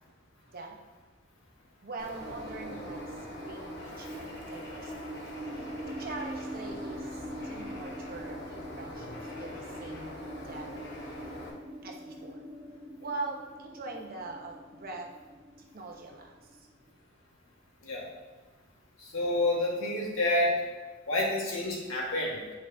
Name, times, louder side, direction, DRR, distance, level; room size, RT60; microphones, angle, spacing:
voice 1, 0.5-0.8 1.8-5.0 5.6-10.1 10.4-10.7 11.8-12.5 13.0-15.1 15.6-16.7, right 3 dB, 45° right, 1 dB, 1.0 m, -42 dB
Bird, 2.0-11.5, left 1 dB, 55° left, 1.2 m, -44 dB
sound 1, 2.2-16.9, right 1 dB, 30° right, 1.5 m, -43 dB
voice 2, 19.0-20.5 21.1-22.5, left 1 dB, 80° left, -3 dB, 1.8 m, -29 dB
9.0 x 4.9 x 2.8 m, 1.3 s
head